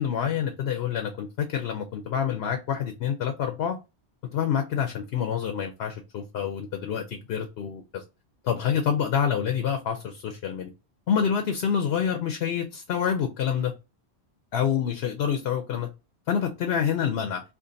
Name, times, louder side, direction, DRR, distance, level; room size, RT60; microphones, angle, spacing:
voice 1, 0.0-3.8 4.3-8.0 8.4-10.7 11.1-13.7 14.5-15.9 16.3-17.4, left 8 dB, 70° left, 0.8 m, -27 dB
2.6 x 2.5 x 3.7 m
omnidirectional pair, 1.2 m